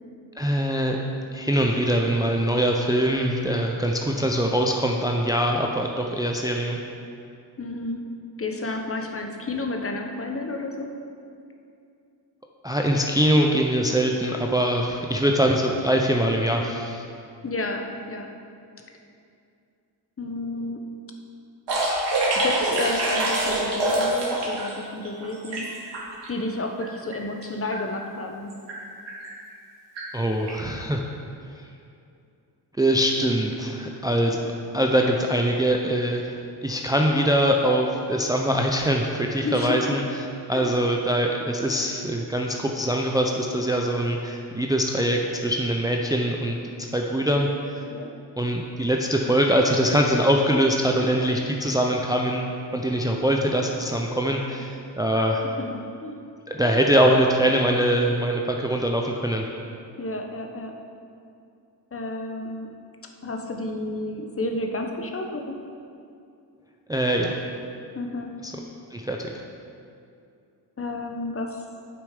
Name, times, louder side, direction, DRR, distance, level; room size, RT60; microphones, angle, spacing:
voice 1, 0.4-1.0 1.3-6.8 12.6-17.0 30.1-31.0 32.8-34.4 34.7-40.0 40.5-47.5 47.7-47.8 48.4-55.4 56.5-59.4 66.9-67.4 68.9-69.3, right 1 dB, 10° right, 1 dB, 0.5 m, -23 dB
voice 2, 7.6-8.0 8.4-10.9 17.4-18.3 20.2-20.8 22.3-25.9 26.3-28.5 39.4-40.0 40.5-40.7 47.9-48.1 55.6-56.2 60.0-60.7 61.9-62.7 63.2-65.6 67.9-68.3 70.8-71.6, left 2 dB, 30° left, 3 dB, 0.9 m, -31 dB
sound 1, 21.7-24.7 25.0-26.3 26.8-26.9 27.1-27.4 27.7-27.8 28.5-28.8 29.1-29.3 30.0-30.1 30.5-30.6, right 1 dB, 75° right, 2.1 m, -25 dB
8.5 x 7.0 x 5.0 m, 2.5 s
wide cardioid pair, 115°, 43 cm